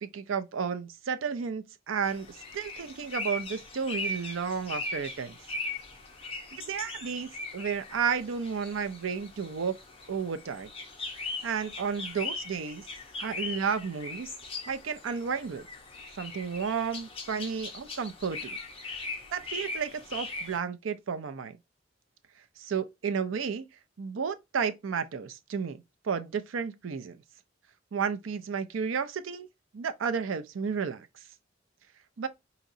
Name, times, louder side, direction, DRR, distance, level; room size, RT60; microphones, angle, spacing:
voice 1, 0.0-5.4 6.5-9.7 10.1-10.7 11.4-12.8 13.2-14.3 14.7-15.7 16.2-18.6 19.3-21.6 22.6-23.7 24.0-27.2 27.9-29.5 29.7-31.1 32.2-32.3, right 6 dB, 80° right, 0.5 m, -32 dB
sound 1, 2.0-20.6, left 2 dB, 30° left, 0.9 m, -40 dB
4.9 x 2.8 x 2.6 m
head